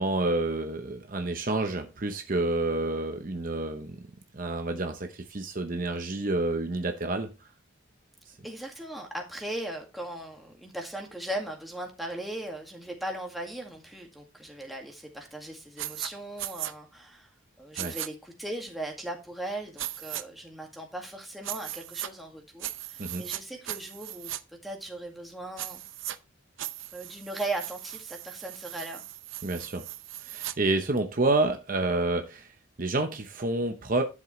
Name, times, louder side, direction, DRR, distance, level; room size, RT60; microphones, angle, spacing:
voice 1, 0.0-4.0 4.3-7.3 17.8-17.9 23.0-23.2 29.4-29.8 30.2-34.0, right 2 dB, 40° right, 5 dB, 0.9 m, -29 dB
voice 2, 8.4-17.3 17.6-24.3 24.6-25.9 26.9-29.1, right 1 dB, ahead, 0 dB, 2.0 m, -38 dB
sound 1, 15.8-16.1 16.4-16.7 17.7-18.1 19.8-20.2 21.4-22.1 22.6-23.4 23.7-24.4 25.6-26.2 26.6-30.5, right 13 dB, 70° right, 0.7 m, -37 dB
11.0 x 7.4 x 3.2 m, 0.29 s
head